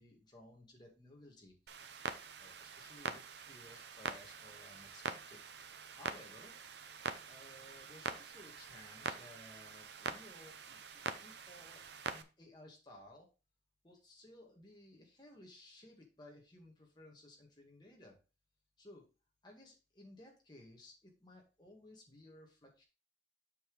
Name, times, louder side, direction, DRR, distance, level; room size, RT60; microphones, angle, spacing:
voice 1, 0.0-1.6 2.4-5.4 5.9-6.6 6.9-13.3 13.8-18.2 18.8-19.1 19.4-22.8, left 1 dB, 25° left, -1 dB, 1.9 m, -58 dB
Clock, 1.7-12.2, right 5 dB, 70° right, 0.7 m, -45 dB
7.1 x 5.8 x 3.3 m, 0.32 s
head